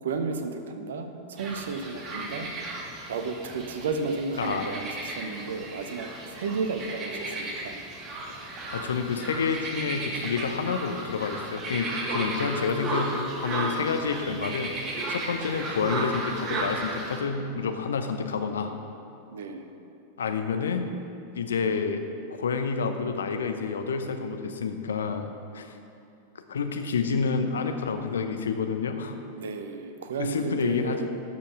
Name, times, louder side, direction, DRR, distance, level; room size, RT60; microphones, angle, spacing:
voice 1, 0.0-2.5 3.1-7.8 19.3-19.7 29.3-31.1, right 4 dB, 60° right, 7 dB, 0.8 m, -33 dB
sound 1, 1.4-17.2, right 2 dB, 30° right, 1.5 m, -34 dB
voice 2, 4.4-4.7 8.7-14.7 15.1-18.7 20.2-20.9 21.3-22.0 22.3-25.7 26.5-29.2 30.2-31.1, left 5 dB, 65° left, 6 dB, 0.8 m, -29 dB
12.5 x 5.7 x 6.0 m, 2.7 s
figure-of-eight pair, 90°, 0 cm